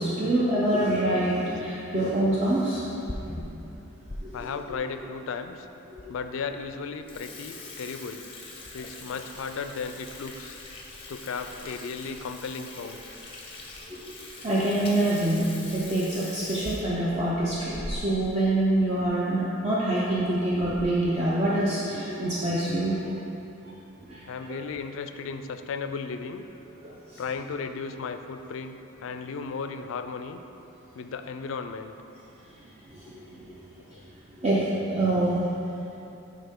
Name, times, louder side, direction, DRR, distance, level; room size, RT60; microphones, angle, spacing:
voice 1, 0.0-2.8 4.2-4.5 5.9-6.0 13.9-14.0 14.4-15.5 15.7-23.1 24.1-24.2 34.4-35.4, right 1 dB, 30° right, -7 dB, 0.6 m, -25 dB
Water tap faucet / Sink (filling or washing), 3.0-4.2 4.7-4.8 5.5-5.6 6.0-6.1 6.4-6.6 6.9-18.3 18.6-18.7 19.0-19.1 19.9-20.2 20.6-21.0, left 2 dB, 25° left, 0.6 m, -41 dB
voice 2, 4.3-5.7 6.1-8.2 8.7-10.6 11.1-13.0 24.3-26.4 27.2-30.4 31.0-31.9 33.9-34.0, left 5 dB, 70° left, 8 dB, 0.3 m, -35 dB
9.6 x 3.7 x 3.6 m, 2.9 s
head